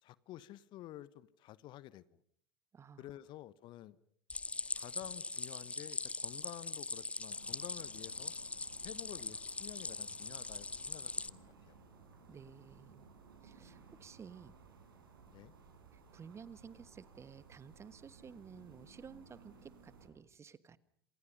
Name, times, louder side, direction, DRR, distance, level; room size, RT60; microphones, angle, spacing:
voice 1, 0.0-2.2 3.0-4.0 4.7-8.3 8.8-11.8 15.3-15.5, left 14 dB, 40° left, 19 dB, 1.1 m, -51 dB
voice 2, 2.7-3.1 12.3-13.1 13.4-14.5 15.9-20.8, right 6 dB, 25° right, 17 dB, 1.3 m, -54 dB
Stream, 4.3-11.3, left 3 dB, 10° left, 0.9 m, -41 dB
sound 1, 7.3-20.1, right 5 dB, 70° right, 7.7 m, -59 dB
28.0 x 26.5 x 5.4 m, 0.67 s
figure-of-eight pair, 80°, 12 cm